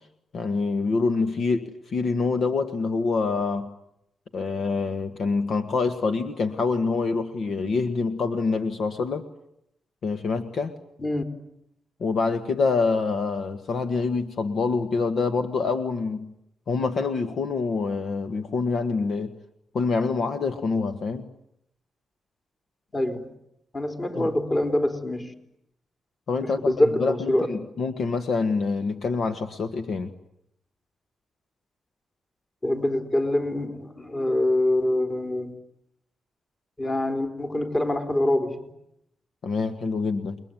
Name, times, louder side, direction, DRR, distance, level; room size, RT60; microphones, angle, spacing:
voice 1, 0.3-3.7 4.3-9.3 10.0-10.7 12.0-16.3 16.7-19.4 19.7-21.3 24.1-24.3 26.3-30.1 39.4-40.4, left 4 dB, 65° left, 7 dB, 1.6 m, -26 dB
voice 2, 22.9-23.3 23.7-25.3 26.4-27.5 32.6-35.5 36.8-38.7, left 1 dB, 25° left, 5 dB, 3.9 m, -25 dB
29.5 x 21.5 x 9.3 m, 0.79 s
cardioid pair, 100°, 0 cm